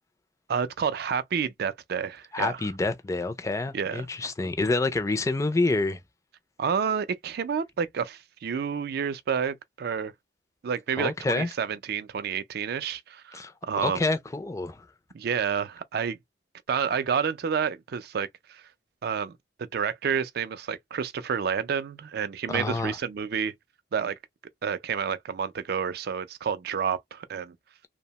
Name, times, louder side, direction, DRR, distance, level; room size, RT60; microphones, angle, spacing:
voice 1, 0.5-2.6 3.7-4.0 6.6-10.1 10.6-14.0 15.1-16.2 16.7-18.6 19.0-19.3 19.6-23.5 23.9-24.2 24.6-27.6, right 7 dB, 60° right, 0.4 m, -29 dB
voice 2, 2.3-6.0 11.0-11.5 13.3-14.9 22.5-23.0, left 3 dB, 15° left, 0.4 m, -28 dB
2.7 x 2.1 x 2.7 m
head